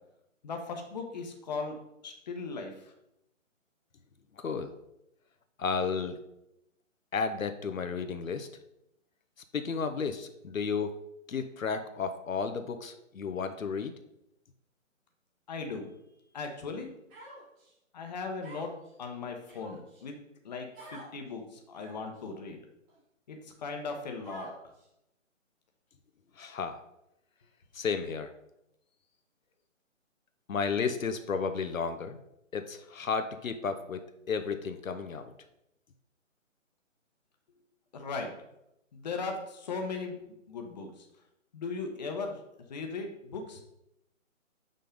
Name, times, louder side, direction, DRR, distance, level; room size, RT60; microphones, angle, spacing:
voice 1, 0.4-1.8 2.0-2.9 15.5-15.9 16.3-16.9 17.9-18.7 19.0-20.1 20.4-22.6 23.3-24.5 37.9-38.3 38.9-40.2 40.5-41.1 41.5-42.4 42.7-43.6, left 4 dB, 30° left, 3 dB, 0.9 m, -38 dB
voice 2, 4.4-4.7 5.6-6.2 7.1-8.5 9.5-10.9 11.3-14.0 26.4-26.8 27.7-28.3 30.5-32.2 32.5-34.0 34.3-35.3, left 5 dB, 85° left, 9 dB, 0.9 m, -32 dB
Human voice, 17.1-17.7 18.4-18.9 19.4-20.0 20.7-21.1 21.7-22.2 22.9-23.0 24.2-24.8, right 1 dB, 15° right, 1.6 m, -48 dB
5.8 x 5.2 x 5.1 m, 0.84 s
hypercardioid pair, 160°, 40 cm